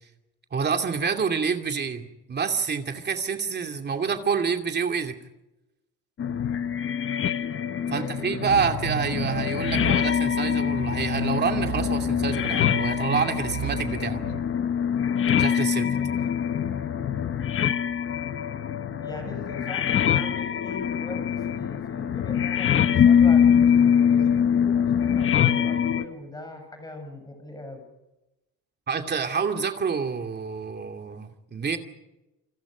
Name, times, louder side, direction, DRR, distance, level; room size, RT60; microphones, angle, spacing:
voice 1, 0.5-5.2 7.9-14.2 15.4-15.9 28.9-31.8, right 6 dB, 30° right, 5 dB, 2.5 m, -27 dB
sound 1, 6.2-26.1, left 8 dB, 35° left, 1.2 m, -24 dB
voice 2, 7.8-8.3 15.8-16.1 18.6-27.8, left 1 dB, 10° left, 4 dB, 7.7 m, -41 dB
sound 2, 8.3-14.4, right 7 dB, 85° right, 2.1 m, -34 dB
29.0 x 25.5 x 5.2 m, 0.97 s
cardioid pair, 155°, 36 cm